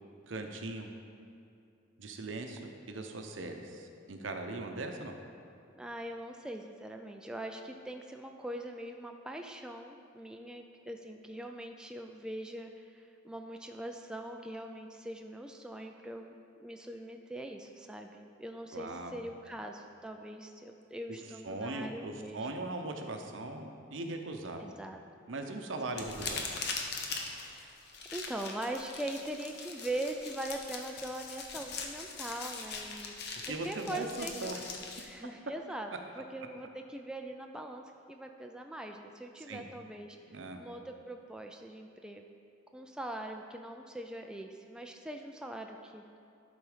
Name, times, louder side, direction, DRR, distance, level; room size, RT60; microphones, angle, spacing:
voice 1, 0.2-0.9 2.0-5.2 18.7-19.2 21.4-24.7 25.3-26.5 33.4-34.7 39.5-39.6 40.3-40.6, right 2 dB, 75° right, 5 dB, 0.7 m, -39 dB
voice 2, 5.8-22.5 24.5-25.0 25.8-26.0 27.2-27.8 28.1-33.1 33.5-34.6 35.0-35.9 36.2-40.2 40.6-42.3 42.7-46.0, right 1 dB, 5° right, 3 dB, 0.3 m, -42 dB
sound 1, 25.9-35.0, left 4 dB, 60° left, 0.9 m, -41 dB
11.5 x 4.0 x 4.9 m, 2.6 s
head